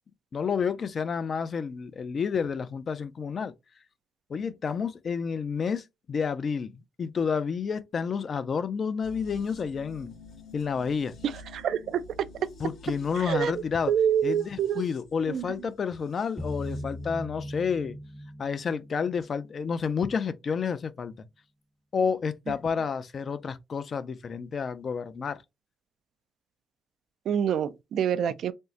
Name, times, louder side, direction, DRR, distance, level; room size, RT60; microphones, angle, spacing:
voice 1, 0.3-3.5 4.3-10.1 10.5-11.2 12.6-13.9 14.2-18.0 18.4-21.3 21.9-25.4, left 6 dB, 45° left, 0.4 m, -30 dB
sound 1, 9.0-16.9 17.2-17.3, left 2 dB, 70° left, 1.8 m, -50 dB
voice 2, 11.5-12.0 13.2-13.5 13.9-14.8 15.3-15.5 27.3-28.5, right 9 dB, 70° right, 0.3 m, -26 dB
sound 2, 16.4-19.5, left 1 dB, 10° right, 0.6 m, -39 dB
3.4 x 2.0 x 2.7 m
cardioid pair, 90°, 0 cm